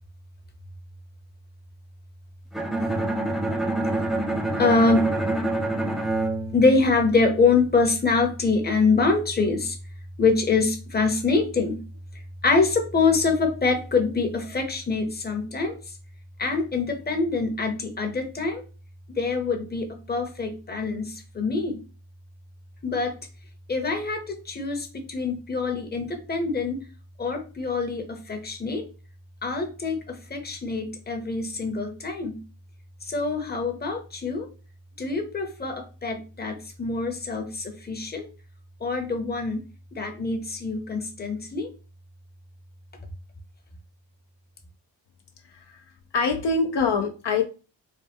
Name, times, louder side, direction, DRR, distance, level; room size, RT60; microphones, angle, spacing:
Bowed string instrument, 2.5-7.5, right 2 dB, ahead, 0.4 m, -27 dB
voice 1, 4.6-5.1 6.5-9.8 10.2-11.8 12.4-15.7 16.4-18.6 19.1-21.8 22.8-23.1 23.7-26.8 27.2-28.8 29.4-32.4 33.0-34.5 35.0-38.3 38.8-39.6 39.9-41.7, left 4 dB, 20° left, 4 dB, 0.8 m, -25 dB
voice 2, 46.1-47.4, left 4 dB, 60° left, 4 dB, 0.6 m, -24 dB
4.1 x 2.1 x 3.5 m, 0.33 s
cardioid pair, 85°, 46 cm